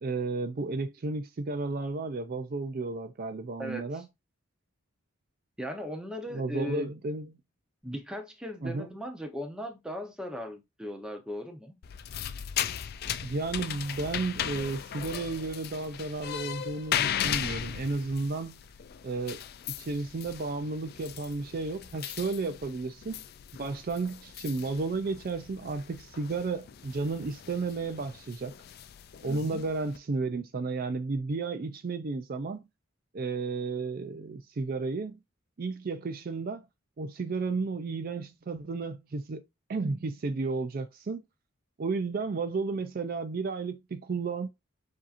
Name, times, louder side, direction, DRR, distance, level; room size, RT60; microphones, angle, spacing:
voice 1, 0.0-4.1 6.3-7.4 8.6-8.9 13.2-18.6 19.0-19.4 19.8-23.2 23.6-28.5 29.2-32.6 33.1-35.2 35.6-36.6 37.0-39.4 39.7-41.2 41.8-44.5, right 3 dB, 45° right, 0.4 m, -33 dB
voice 2, 3.6-4.0 5.6-6.9 7.8-11.8 29.2-29.6, equal, 5° right, 0.7 m, -38 dB
sound 1, 11.8-30.0, left 9 dB, 45° left, 0.3 m, -37 dB
7.4 x 2.7 x 2.5 m
head